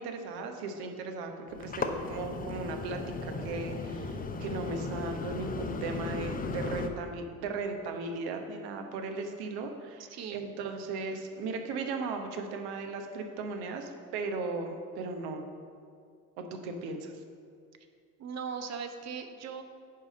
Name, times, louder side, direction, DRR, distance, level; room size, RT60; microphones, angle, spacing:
voice 1, 0.0-15.5 16.4-17.1, right 3 dB, 55° right, 5 dB, 1.2 m, -37 dB
sound 1, 1.5-6.9, left 3 dB, 20° left, 0.7 m, -36 dB
voice 2, 10.1-10.4 18.2-19.6, right 6 dB, 35° right, 7 dB, 0.9 m, -38 dB
10.5 x 4.9 x 5.3 m, 2.3 s
figure-of-eight pair, 60°, 45 cm